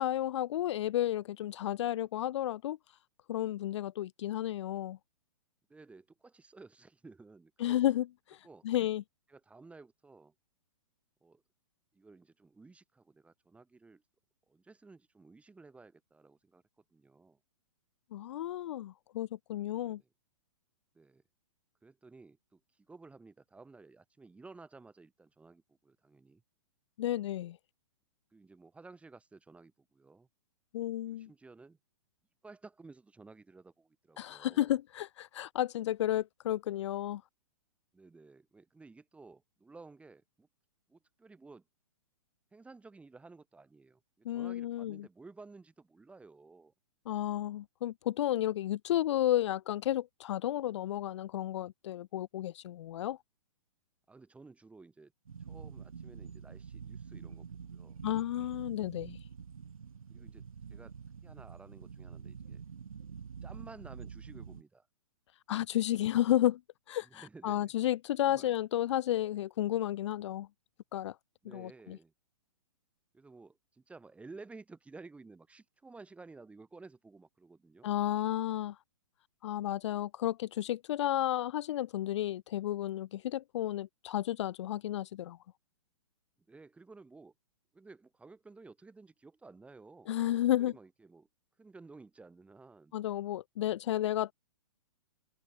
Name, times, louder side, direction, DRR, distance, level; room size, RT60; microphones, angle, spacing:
voice 1, 0.0-2.8 3.3-5.0 7.6-8.4 8.6-9.0 18.1-20.0 27.0-27.6 30.7-31.3 34.2-37.2 44.2-45.1 47.1-53.2 58.0-59.2 65.5-66.6 66.9-70.5 70.9-71.2 71.4-72.0 77.8-78.8 79.4-85.4 90.1-90.7 92.9-94.3, left 13 dB, 55° left, 0.8 m, -32 dB
voice 2, 5.7-7.8 8.4-8.9 9.3-10.3 11.2-11.4 11.9-14.0 14.5-16.6 16.9-17.4 19.8-20.1 20.9-21.2 21.8-26.4 28.3-30.3 31.1-31.8 32.4-34.7 37.9-40.5 40.9-41.6 42.5-46.7 54.1-55.1 55.4-58.0 60.1-60.9 61.2-62.6 63.4-64.9 66.2-66.4 67.0-67.7 68.2-68.5 71.4-72.1 73.1-77.9 86.5-87.3 87.7-90.1 90.6-91.3 91.6-92.9, right 3 dB, 5° right, 2.8 m, -54 dB
sound 1, 55.3-64.6, right 6 dB, 85° right, 4.4 m, -47 dB
hypercardioid pair, 135°, 17 cm